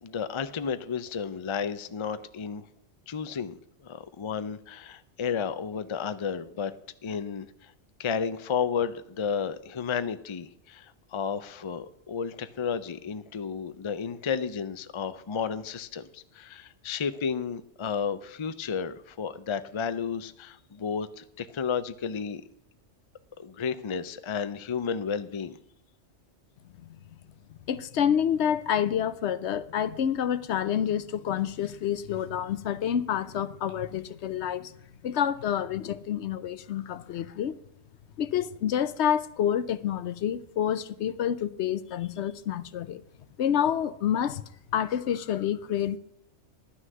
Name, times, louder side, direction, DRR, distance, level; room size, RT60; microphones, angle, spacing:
voice 1, 0.0-2.7 3.1-6.7 7.0-7.7 8.0-22.4 23.4-25.6, left 6 dB, 35° left, 0.5 m, -32 dB
voice 2, 27.7-34.7 35.0-37.5 38.2-43.0 43.4-44.4 44.7-46.0, left 9 dB, 70° left, 0.9 m, -28 dB
11.5 x 6.3 x 7.8 m
omnidirectional pair, 1.2 m